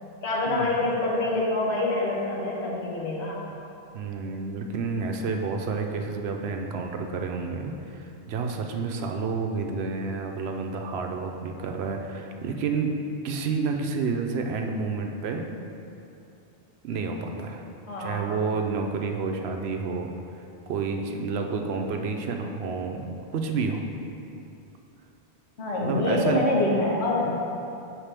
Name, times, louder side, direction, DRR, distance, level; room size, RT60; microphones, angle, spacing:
voice 1, 0.2-3.4 17.9-18.3 25.6-27.3, left 2 dB, 80° left, -4 dB, 1.4 m, -26 dB
voice 2, 3.9-12.9 13.2-15.5 16.8-17.6 18.0-20.1 20.7-23.0 23.3-23.9 25.8-26.4 27.2-27.4, right 4 dB, 75° right, 3 dB, 0.8 m, -29 dB
7.3 x 4.8 x 3.3 m, 2.8 s
omnidirectional pair, 1.1 m